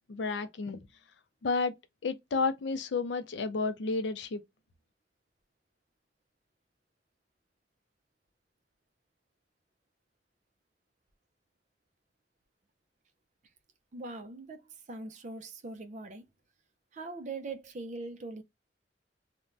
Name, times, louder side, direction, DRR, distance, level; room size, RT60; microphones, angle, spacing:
voice 1, 0.1-0.9 1.4-1.7 2.0-4.4, left 4 dB, 80° left, 0.4 m, -31 dB
voice 2, 13.9-14.6 14.9-16.2 16.9-18.4, right 3 dB, 45° right, 0.4 m, -41 dB
2.5 x 2.1 x 3.1 m
head